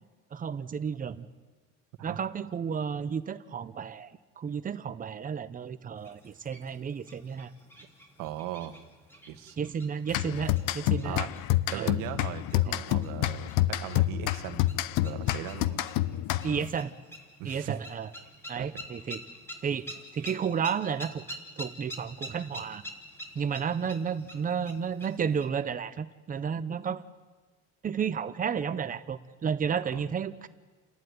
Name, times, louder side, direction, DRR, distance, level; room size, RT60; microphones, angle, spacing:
voice 1, 0.3-1.3 2.0-4.1 4.4-7.5 9.6-11.2 11.7-11.9 12.6-12.8 16.4-16.9 17.4-18.1 18.5-19.2 19.6-22.8 23.3-27.0 27.8-30.5, right 7 dB, 25° right, 12 dB, 0.9 m, -32 dB
sound 1, 6.0-25.5, equal, 5° left, 3.1 m, -48 dB
voice 2, 8.2-8.7 9.3-9.7 11.0-11.3 11.7-14.7 15.0-15.8 17.4-17.8 18.5-18.9 29.9-30.0, right 13 dB, 85° right, 8 dB, 1.6 m, -39 dB
sound 2, 10.1-16.8, left 15 dB, 85° left, 0.8 m, -28 dB
30.0 x 11.5 x 9.5 m, 1.3 s
cardioid pair, 160°, 32 cm